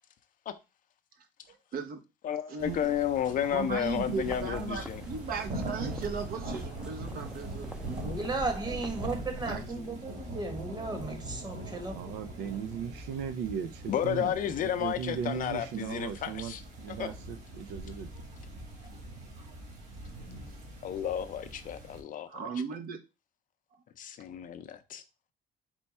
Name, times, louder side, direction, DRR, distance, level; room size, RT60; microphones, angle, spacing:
voice 1, 1.5-2.0 2.5-2.9 3.4-8.1 9.4-10.0 18.1-18.2 19.4-19.6 22.3-23.0, right 5 dB, 60° right, 0.9 m, -37 dB
voice 2, 2.2-5.0 13.9-16.6 17.0-17.1 20.8-22.4 24.0-25.0, left 10 dB, 50° left, 0.5 m, -32 dB
sound 1, 2.6-22.0, right 1 dB, 45° right, 1.9 m, -42 dB
sound 2, 3.8-9.9, left 1 dB, 5° right, 0.5 m, -45 dB
voice 3, 8.0-12.5, right 3 dB, 25° right, 1.2 m, -35 dB
voice 4, 11.9-14.3 14.6-18.1, right 7 dB, 85° right, 0.5 m, -37 dB
4.3 x 2.3 x 4.2 m
cardioid pair, 110°, 17 cm